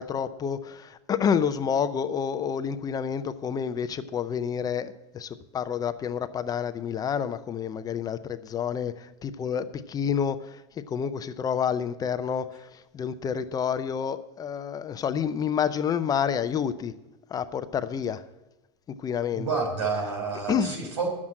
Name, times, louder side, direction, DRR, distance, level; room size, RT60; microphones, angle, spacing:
voice 1, 0.0-10.6 10.9-12.7 12.9-16.9 17.3-18.2 19.0-19.5 20.5-20.8, left 7 dB, 25° left, 12 dB, 0.6 m, -29 dB
voice 2, 19.3-21.1, right 4 dB, 85° right, 3 dB, 4.3 m, -29 dB
11.0 x 7.4 x 7.5 m, 1.1 s
supercardioid pair, 130°, 15 cm